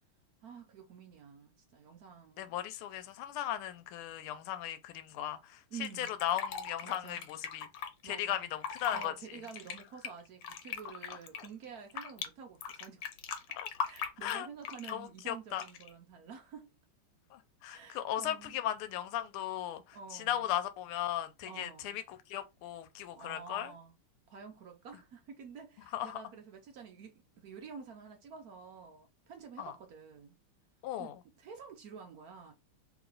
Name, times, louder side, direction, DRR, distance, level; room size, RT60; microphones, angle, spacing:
voice 1, 0.4-2.6 5.7-6.1 6.8-7.2 8.0-8.5 8.9-13.0 13.8-16.7 17.7-18.6 19.9-20.5 21.5-22.0 23.1-23.9 24.3-30.4 31.0-32.5, right 6 dB, 70° right, 0.8 m, -49 dB
voice 2, 2.4-7.7 8.0-9.1 11.4-11.5 13.5-13.7 14.2-14.5 14.9-15.6 17.3-23.7 25.9-26.2 29.6-29.7 30.8-31.1, left 11 dB, 90° left, 1.5 m, -37 dB
Fill (with liquid), 5.8-7.9 8.5-9.1 9.4-12.3 12.6-15.0 15.5-15.9, left 7 dB, 70° left, 1.3 m, -40 dB
3.2 x 3.0 x 3.8 m
omnidirectional pair, 2.4 m